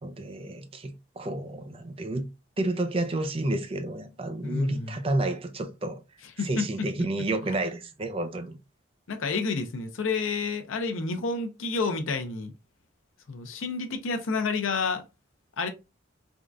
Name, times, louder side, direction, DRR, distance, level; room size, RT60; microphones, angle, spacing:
voice 1, 0.0-2.3 2.6-6.0 6.4-8.6, right 2 dB, 30° right, 0.4 m, -30 dB
voice 2, 4.4-5.0 6.4-6.7 7.4-7.5 9.1-12.5 13.3-15.0 15.6-15.7, left 4 dB, 85° left, 0.6 m, -29 dB
3.5 x 2.3 x 2.5 m
head